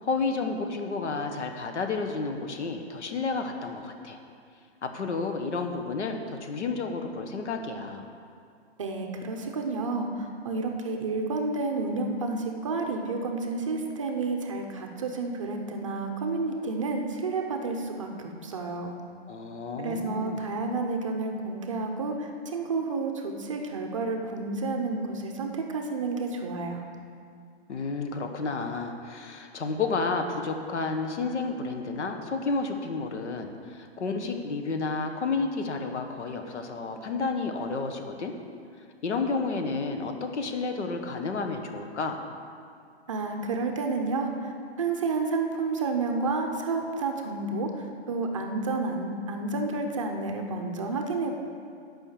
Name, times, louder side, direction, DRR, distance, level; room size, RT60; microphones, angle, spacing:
voice 1, 0.0-4.2 4.8-8.1 19.3-20.4 27.7-38.3 39.0-42.3, left 4 dB, 75° left, 5 dB, 1.3 m, -31 dB
voice 2, 8.8-19.0 19.8-26.8 43.1-44.5 44.8-51.3, right 3 dB, 30° right, 3 dB, 0.6 m, -30 dB
10.5 x 5.6 x 7.2 m, 2.3 s
hypercardioid pair, 170°, 35 cm